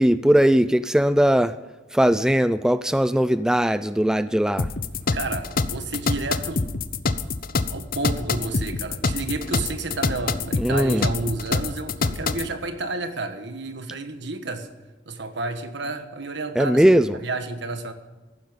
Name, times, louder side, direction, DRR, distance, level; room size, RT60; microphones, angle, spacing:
voice 1, 0.0-1.6 1.9-4.7 10.6-11.1 16.6-17.2, equal, 5° right, 14 dB, 0.3 m, -19 dB
sound 1, 4.6-12.5, left 4 dB, 50° left, 0.7 m, -26 dB
voice 2, 5.1-6.6 7.7-14.7 15.1-16.8 17.2-17.9, right 3 dB, 65° right, 8 dB, 1.4 m, -31 dB
15.0 x 12.0 x 5.2 m, 1.2 s
head